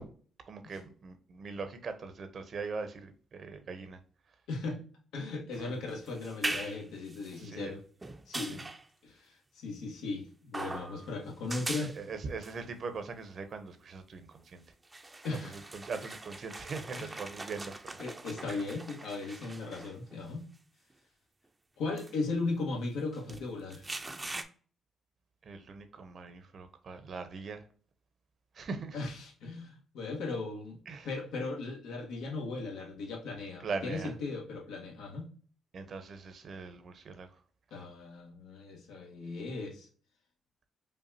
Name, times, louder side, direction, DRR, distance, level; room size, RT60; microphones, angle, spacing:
voice 1, 0.5-4.0 5.6-5.7 7.4-7.8 8.5-8.6 12.0-14.6 15.7-18.0 18.5-18.6 25.5-27.6 28.6-29.0 30.9-31.1 33.6-34.1 35.7-37.3, right 4 dB, 50° right, 0.8 m, -41 dB
voice 2, 4.5-4.8 5.1-7.8 8.3-8.6 9.0-11.9 15.2-15.6 16.9-17.2 18.0-20.5 21.8-23.9 28.9-30.8 31.0-35.3 37.7-39.9, left 3 dB, 90° left, 1.3 m, -37 dB
sound 1, 5.5-7.4 8.0-8.9 10.5-11.2 11.4-12.0 12.4-12.6 14.3-14.4 14.8-20.2 20.9-21.0 22.0-22.1 23.1-24.4, right 2 dB, 20° right, 0.5 m, -41 dB
5.3 x 2.4 x 2.7 m
cardioid pair, 90°, 0 cm